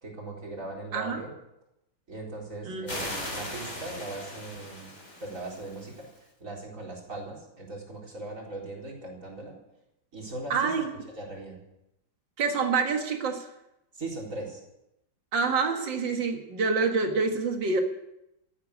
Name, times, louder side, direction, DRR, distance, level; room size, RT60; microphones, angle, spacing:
voice 1, 0.0-1.3 2.1-4.9 5.2-9.6 10.1-10.7 11.2-11.6 13.9-14.6, right 2 dB, 45° right, -2 dB, 4.7 m, -39 dB
sound 1, 2.9-6.2, left 1 dB, 40° left, 4.4 m, -39 dB
voice 2, 10.5-10.9 12.4-13.5 15.3-17.8, right 4 dB, 85° right, 4 dB, 2.3 m, -27 dB
14.5 x 11.5 x 8.4 m, 0.87 s
omnidirectional pair, 1.9 m